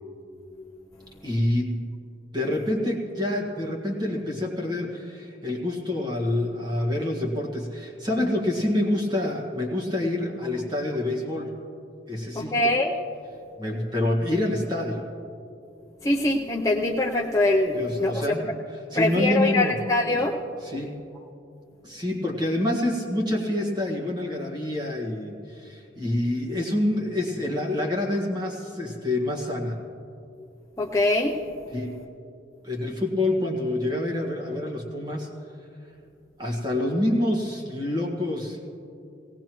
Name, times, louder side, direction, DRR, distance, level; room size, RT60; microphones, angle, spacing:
voice 1, 1.2-1.8 2.3-11.5 12.1-12.5 13.6-15.0 17.7-19.8 20.6-20.9 21.8-29.8 31.7-31.9 32.6-35.3 36.4-38.6, left 1 dB, 25° right, 0 dB, 1.7 m, -27 dB
voice 2, 12.3-12.9 16.0-18.2 18.9-20.3 30.8-31.4, left 2 dB, 15° left, -3 dB, 0.6 m, -23 dB
18.0 x 18.0 x 3.1 m, 2.6 s
head